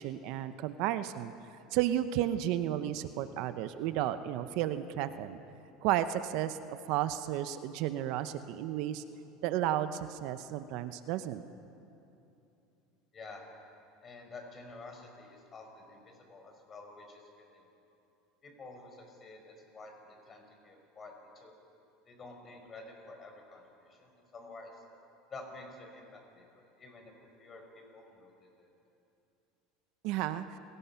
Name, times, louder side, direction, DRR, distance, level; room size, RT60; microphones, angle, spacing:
voice 1, 0.0-1.3 1.7-5.4 5.8-9.0 9.4-11.4 30.0-30.6, right 12 dB, 65° right, 11 dB, 0.8 m, -33 dB
voice 2, 14.0-17.6 18.4-21.5 22.0-24.8 25.3-28.7, left 3 dB, 30° left, 3 dB, 5.0 m, -50 dB
29.5 x 18.0 x 5.8 m, 2.8 s
supercardioid pair, 120°, 0 cm